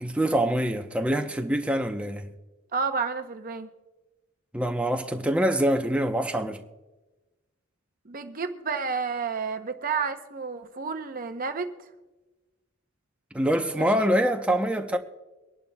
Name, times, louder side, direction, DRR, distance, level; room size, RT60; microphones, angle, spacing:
voice 1, 0.0-2.3 4.5-6.6 13.3-15.0, right 1 dB, 5° right, 0.7 m, -25 dB
voice 2, 2.7-3.7 8.1-11.7 13.8-13.9, right 5 dB, 45° right, 0.7 m, -30 dB
24.0 x 11.0 x 2.3 m
head